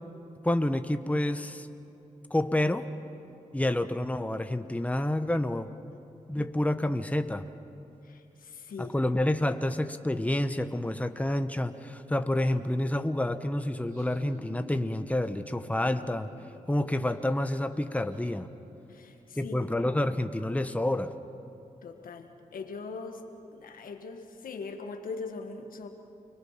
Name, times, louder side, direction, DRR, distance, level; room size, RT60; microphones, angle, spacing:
voice 1, 0.4-1.7 2.3-2.9 3.5-5.7 6.3-7.5 8.8-16.3 16.7-18.5 19.4-21.1, left 1 dB, 10° left, 9 dB, 1.1 m, -28 dB
voice 2, 8.0-8.9 18.9-19.7 21.8-23.2 23.5-25.9, left 4 dB, 85° left, 5 dB, 1.6 m, -41 dB
Laughter, 13.7-18.2, right 2 dB, 85° right, 4.4 m, -51 dB
29.5 x 20.0 x 5.9 m, 2.9 s
cardioid pair, 45°, 14 cm